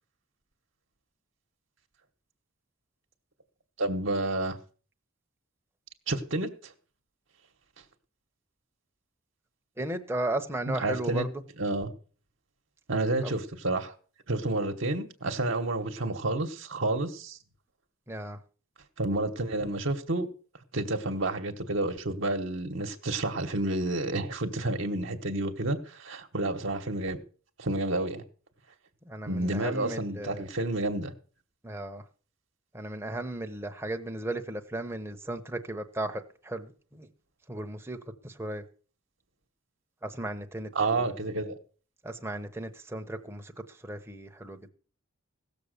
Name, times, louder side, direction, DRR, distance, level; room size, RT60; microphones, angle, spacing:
voice 1, 3.8-4.6 6.1-6.7 10.7-11.3 11.6-11.9 12.9-13.9 14.3-17.4 19.0-20.3 20.7-27.2 27.6-28.2 29.3-31.1 40.7-41.5, right 2 dB, 60° right, 1.2 m, -30 dB
voice 2, 9.8-11.3 13.2-13.3 18.1-18.4 29.1-30.4 31.6-32.0 32.7-37.1 37.5-38.0 38.2-38.6 40.0-40.7 41.0-41.2 42.0-43.5 43.8-44.6, right 1 dB, 10° right, 0.9 m, -35 dB
16.5 x 7.0 x 6.6 m
head